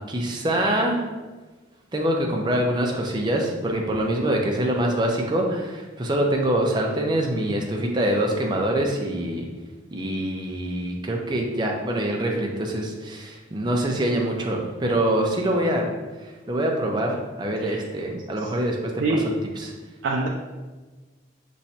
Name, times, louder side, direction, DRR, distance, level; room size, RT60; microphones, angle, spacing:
voice 1, 0.1-1.0 1.9-9.5 9.9-15.9 16.2-19.2 19.6-19.7, right 1 dB, 25° right, 0 dB, 0.5 m, -25 dB
voice 2, 17.6-17.8 18.4-18.5 19.0-19.2 20.0-20.3, right 3 dB, 80° right, -2 dB, 0.4 m, -24 dB
5.7 x 3.1 x 2.7 m, 1.3 s
head